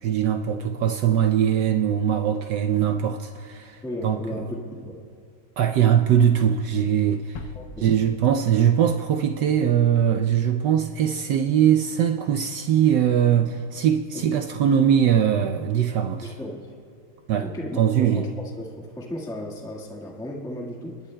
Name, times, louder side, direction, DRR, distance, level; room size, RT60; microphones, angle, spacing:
voice 1, 0.0-4.4 5.6-7.5 7.8-16.3 17.3-17.5 17.8-18.3, right 9 dB, 75° right, 6 dB, 1.0 m, -21 dB
voice 2, 3.8-5.0 7.5-7.9 14.1-14.4 16.2-16.7 17.4-18.2 18.6-21.0, left 1 dB, ahead, -2 dB, 1.2 m, -35 dB
sound 1, 7.4-9.4, left 4 dB, 65° left, 0.9 m, -42 dB
25.0 x 20.0 x 2.2 m, 2.3 s
omnidirectional pair, 2.3 m